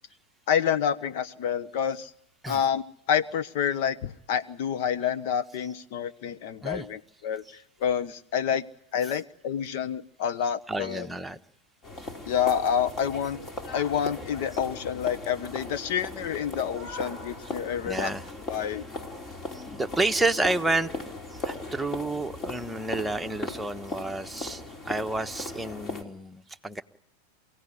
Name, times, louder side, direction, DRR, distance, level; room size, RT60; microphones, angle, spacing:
voice 1, 0.5-2.1 2.5-8.7 8.9-11.1 12.3-13.4 13.7-18.1 18.5-18.8, left 8 dB, 60° left, 14 dB, 1.1 m, -28 dB
voice 2, 10.7-11.4 17.8-18.2 19.5-20.9 21.4-26.8, right 2 dB, 5° right, 5 dB, 1.2 m, -30 dB
sound 1, 11.8-26.0, left 2 dB, 30° left, 4.2 m, -38 dB
28.5 x 17.0 x 9.9 m, 0.77 s
hypercardioid pair, 110°, 0 cm